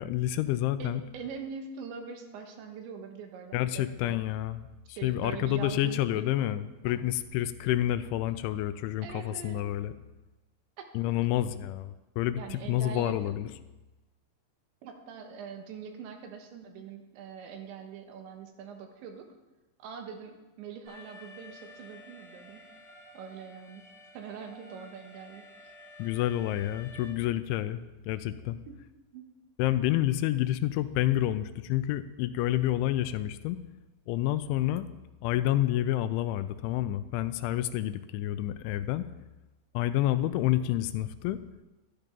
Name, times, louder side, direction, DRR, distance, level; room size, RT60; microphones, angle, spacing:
voice 1, 0.0-1.0 3.5-9.9 10.9-13.5 26.0-28.6 29.6-33.6 34.1-34.9 35.2-39.1 39.7-41.4, left 13 dB, 85° left, 12 dB, 3.0 m, -29 dB
voice 2, 0.8-4.2 5.0-6.2 9.0-9.7 10.8-10.9 12.3-13.4 14.8-19.3 19.8-22.6 23.1-23.9 24.1-25.7 28.7-28.8 29.1-29.3, right 6 dB, 75° right, 5 dB, 3.5 m, -43 dB
Alarm, 20.9-27.1, left 1 dB, 35° right, 6.8 m, -51 dB
12.5 x 11.5 x 5.3 m, 1.1 s
omnidirectional pair, 5.4 m